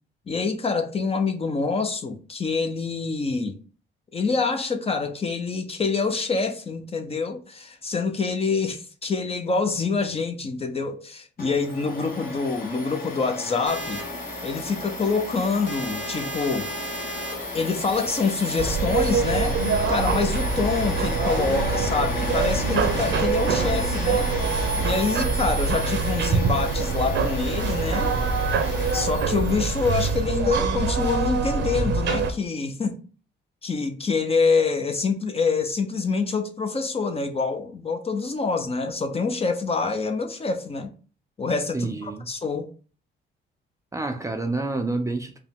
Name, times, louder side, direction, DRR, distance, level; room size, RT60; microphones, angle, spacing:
voice 1, 0.3-3.5 4.1-14.0 14.4-16.7 17.5-19.6 19.9-24.3 24.7-28.1 28.9-33.0 33.6-40.9 41.4-42.7, left 4 dB, 30° left, 0.7 m, -26 dB
Domestic sounds home sounds, 11.4-30.3, left 2 dB, 45° left, 1.3 m, -34 dB
sound 1, 13.6-18.8, equal, 65° left, 1.4 m, -36 dB
sound 2, 18.6-32.3, right 4 dB, 65° right, 0.8 m, -24 dB
voice 2, 41.7-42.3 43.9-45.4, right 2 dB, 15° right, 0.5 m, -28 dB
4.8 x 2.2 x 3.6 m
cardioid pair, 90°, 20 cm